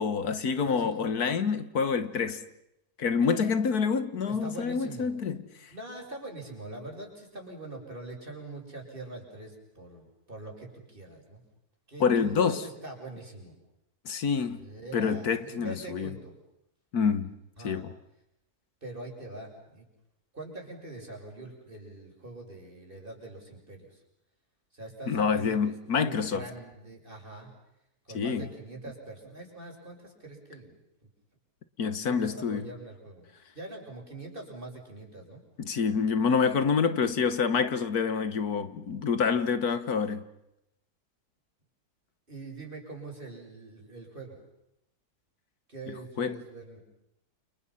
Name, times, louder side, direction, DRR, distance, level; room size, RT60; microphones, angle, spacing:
voice 1, 0.0-2.4 3.0-5.7 12.0-12.6 14.1-14.7 14.9-16.1 16.9-17.3 17.6-17.9 25.1-26.5 28.1-28.5 31.8-32.7 35.6-40.2 46.2-46.4, left 6 dB, 80° left, 1.9 m, -27 dB
voice 2, 0.6-1.0 4.3-5.1 5.7-11.4 11.9-13.5 14.5-16.3 17.6-17.8 18.8-19.9 20.3-24.0 24.7-27.5 28.0-30.8 32.1-33.3 33.5-35.4 42.3-44.4 45.7-46.8, right 2 dB, 35° right, 6.7 m, -43 dB
29.5 x 29.5 x 5.8 m
omnidirectional pair, 1.6 m